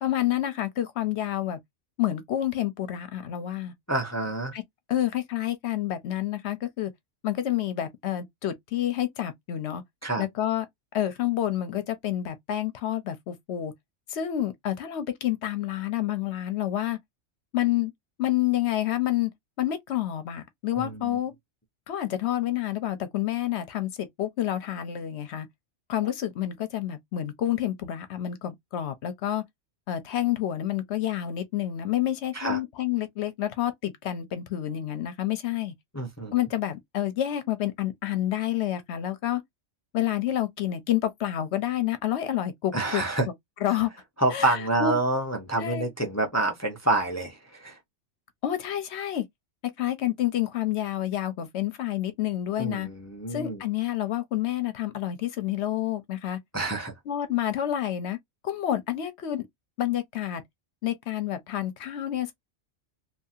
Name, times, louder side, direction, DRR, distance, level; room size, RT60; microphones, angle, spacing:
voice 1, 0.0-1.6 2.0-3.7 4.5-4.6 4.9-6.9 7.2-9.8 10.2-10.7 10.9-13.7 14.1-17.0 17.5-17.9 18.2-19.3 19.6-21.3 21.9-25.5 25.9-29.4 29.9-35.7 36.3-39.4 39.9-43.0 43.6-43.9 44.3-45.0 45.6-45.9 48.4-49.2 49.8-52.9 53.3-56.4 57.1-58.2 58.4-59.5 59.8-60.4 60.8-62.3, left 12 dB, 70° left, 0.9 m, -28 dB
voice 2, 3.9-4.5 10.0-10.2 20.7-21.2 32.3-32.6 35.9-36.3 42.7-43.3 44.2-47.8 52.6-53.6 56.5-56.9, right 2 dB, 20° left, 0.4 m, -27 dB
2.8 x 2.7 x 2.4 m
omnidirectional pair, 1.2 m